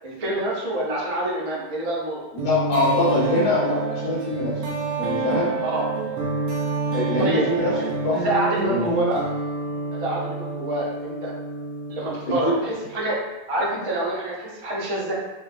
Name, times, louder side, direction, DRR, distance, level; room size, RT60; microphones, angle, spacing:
voice 1, 0.0-2.2 5.6-5.9 7.2-7.4 7.7-7.8 8.1-9.2 10.0-11.3 11.9-13.2 13.5-15.1, right 1 dB, 50° right, -4 dB, 0.4 m, -27 dB
voice 2, 2.3-4.5 5.0-5.5 6.9-8.3 8.7-8.9 12.3-12.5, left 2 dB, 45° left, -5 dB, 0.9 m, -23 dB
sound 1, 2.4-13.0, right 4 dB, 75° right, 0.9 m, -28 dB
2.9 x 2.1 x 2.4 m, 1.1 s
omnidirectional pair, 1.4 m